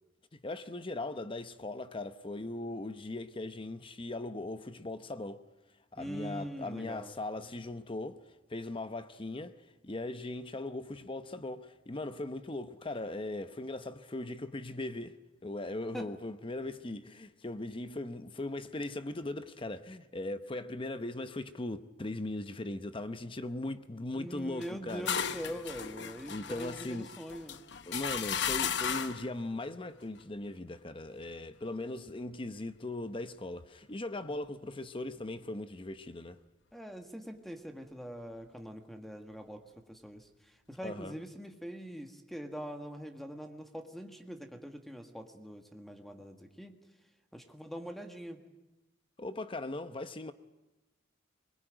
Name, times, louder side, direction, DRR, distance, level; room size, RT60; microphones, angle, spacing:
voice 1, 0.3-5.4 5.9-8.2 8.5-25.1 26.3-27.1 27.9-36.4 40.8-41.2 49.2-50.3, left 2 dB, 25° left, 0.8 m, -39 dB
voice 2, 6.0-7.1 15.9-16.1 24.1-27.6 34.2-34.4 36.7-46.8 47.3-48.4, equal, ahead, 1.7 m, -43 dB
sound 1, 24.6-29.3, left 7 dB, 60° left, 0.9 m, -35 dB
23.5 x 21.5 x 9.0 m
head